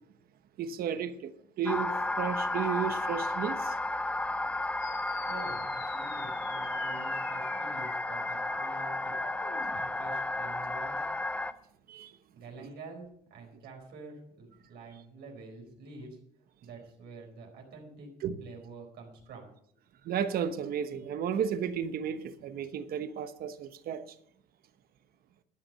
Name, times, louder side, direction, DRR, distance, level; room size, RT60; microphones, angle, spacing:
voice 1, 0.6-3.8 11.9-12.2 12.6-12.7 18.2-18.4 20.0-24.1, right 8 dB, 60° right, 1.0 m, -33 dB
sound 1, 1.7-11.5, left 2 dB, 10° left, 0.6 m, -33 dB
sound 2, 4.8-9.8, left 7 dB, 85° left, 2.8 m, -49 dB
voice 2, 5.3-9.1 9.7-11.1 12.3-16.2 16.6-18.1 18.4-19.5, right 3 dB, 80° right, 4.5 m, -47 dB
12.0 x 9.1 x 5.5 m
cardioid pair, 110°, 17 cm